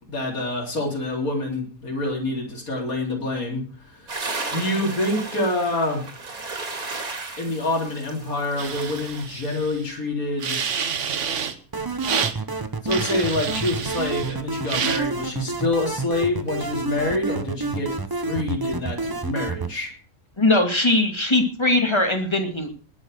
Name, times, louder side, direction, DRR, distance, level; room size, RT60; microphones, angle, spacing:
voice 1, 0.1-4.2 4.5-6.0 7.4-10.6 12.8-19.9, left 2 dB, 80° left, 0 dB, 4.1 m, -26 dB
sound 1, 4.1-9.2, right 3 dB, 80° right, 3.1 m, -34 dB
sound 2, 8.6-9.9 10.4-11.6 12.0-12.3 12.9-14.4 14.6-15.0, right 7 dB, 60° right, 1.4 m, -29 dB
sound 3, 11.7-19.7, right 3 dB, 20° right, 0.6 m, -29 dB
voice 2, 20.4-22.7, left 2 dB, 20° left, 4 dB, 2.4 m, -20 dB
20.0 x 6.8 x 6.5 m, 0.41 s
omnidirectional pair, 1.5 m